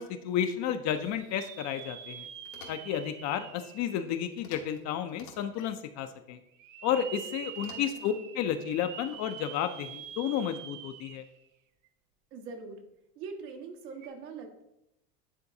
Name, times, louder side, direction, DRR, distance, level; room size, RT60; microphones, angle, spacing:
voice 1, 0.0-2.3 2.7-6.4 6.8-11.2, left 9 dB, 40° left, 9 dB, 0.4 m, -32 dB
sound 1, 0.9-4.8 5.4-5.5 6.5-11.5 11.8-11.9 13.9-14.1, right 9 dB, 40° right, 0.6 m, -46 dB
sound 2, 2.4-3.0 4.4-4.8 5.1-5.7 7.5-8.2, left 6 dB, 85° left, 1.4 m, -51 dB
voice 2, 7.7-8.2 12.3-12.8 13.1-14.6, right 4 dB, 75° right, 3 dB, 1.4 m, -43 dB
9.8 x 3.8 x 2.7 m, 0.83 s
hypercardioid pair, 95°, 47 cm